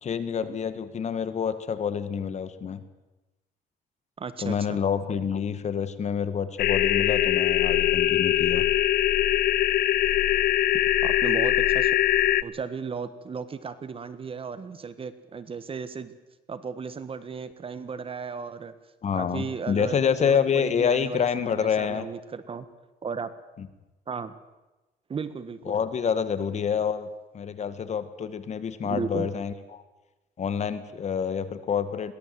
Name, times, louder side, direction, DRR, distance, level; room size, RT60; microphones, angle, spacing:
voice 1, 0.0-2.8 4.4-8.7 19.0-22.1 23.6-23.7 25.7-27.1 27.3-29.8 30.4-32.1, left 7 dB, 40° left, 12 dB, 1.8 m, -27 dB
voice 2, 4.2-4.8 11.0-11.9 12.4-16.1 16.5-18.7 19.1-22.7 23.0-23.3 24.1-24.3 25.1-25.7 28.8-29.3, right 5 dB, 35° right, 13 dB, 1.5 m, -35 dB
sound 1, 6.6-12.4, left 13 dB, 65° left, 0.6 m, -22 dB
22.0 x 17.5 x 7.8 m, 1.1 s
cardioid pair, 110°, 17 cm